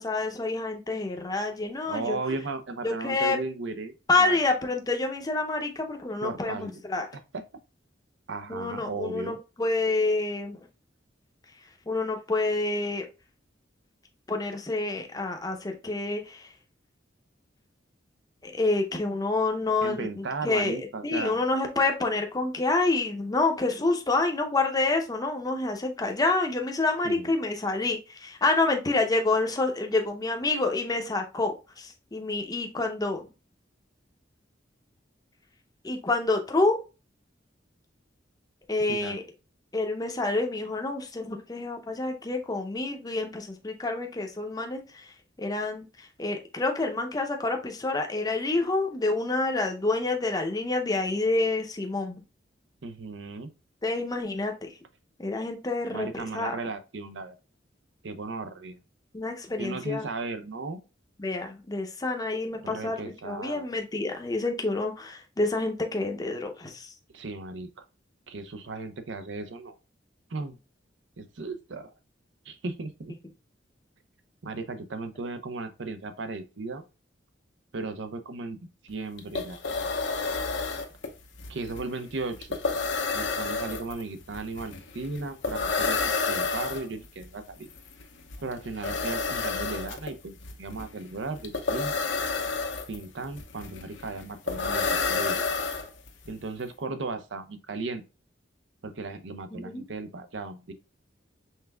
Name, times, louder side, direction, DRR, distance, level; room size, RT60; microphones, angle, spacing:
voice 1, 0.0-2.4 2.8-3.4 4.1-7.1 8.5-10.7 11.9-13.0 14.3-16.5 18.4-33.3 35.8-36.8 38.7-39.2 39.7-45.1 45.4-52.2 53.8-54.7 55.2-56.6 59.1-60.1 61.2-66.9 99.5-99.8, left 3 dB, 20° left, 0.7 m, -28 dB
voice 2, 1.9-4.4 6.2-6.8 7.3-7.4 8.3-9.4 19.8-21.4 27.0-27.3 38.9-39.2 52.8-53.5 55.9-57.3 58.0-58.8 59.6-60.8 62.6-63.7 67.1-67.9 68.3-69.8 70.3-70.6 71.2-71.9 72.4-73.1 74.4-76.8 77.7-79.6 81.5-82.5 83.1-86.0 86.3-87.7 88.4-92.0 92.9-95.5 96.3-98.0 98.8-100.7, right 3 dB, 70° right, 0.6 m, -36 dB
sound 1, 78.9-79.0 79.2-96.3, left 4 dB, 75° left, 0.8 m, -30 dB
5.6 x 3.5 x 2.2 m
head